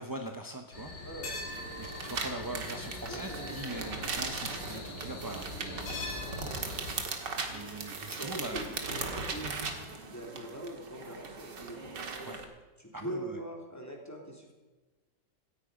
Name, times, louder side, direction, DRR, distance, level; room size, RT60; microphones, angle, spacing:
voice 1, 0.0-0.9 1.7-6.0 7.4-8.6 12.2-12.4 12.9-13.4, right 1 dB, 20° right, 4 dB, 0.6 m, -42 dB
sound 1, 0.7-6.9, left 2 dB, 80° left, 3.9 m, -41 dB
sound 2, 1.5-12.4, right 4 dB, 75° right, 2.4 m, -39 dB
voice 2, 3.0-3.6 8.1-9.6 10.0-11.9 12.8-14.5, right 1 dB, 10° left, 0 dB, 3.3 m, -42 dB
17.5 x 15.0 x 5.2 m, 1.2 s
omnidirectional pair, 1.9 m